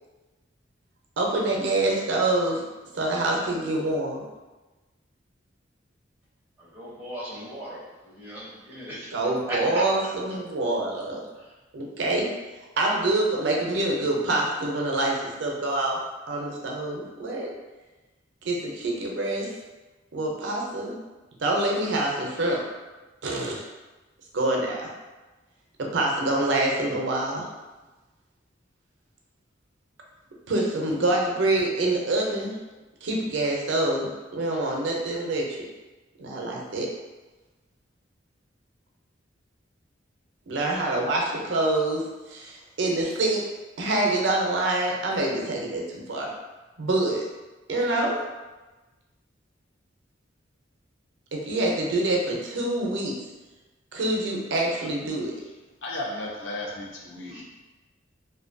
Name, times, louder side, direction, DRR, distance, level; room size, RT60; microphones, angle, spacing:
voice 1, 1.2-2.6 2.9-4.2 9.1-11.2 11.7-12.3 12.8-16.0 16.3-17.5 18.4-19.5 20.1-21.0 21.4-22.6 23.2-23.6 24.3-24.9 25.8-27.5 30.5-32.5 33.0-35.7 36.2-36.9 40.5-42.0 42.3-43.4 43.8-46.3 46.8-47.2 47.7-48.2 51.3-53.1 53.9-55.3, right 2 dB, 75° right, -1 dB, 0.5 m, -26 dB
voice 2, 6.7-9.1 9.5-9.8 57.3-57.4, equal, 10° right, -8 dB, 0.6 m, -36 dB
voice 3, 55.8-57.4, left 1 dB, 80° left, -2 dB, 0.6 m, -34 dB
2.6 x 2.2 x 2.5 m, 1.2 s
head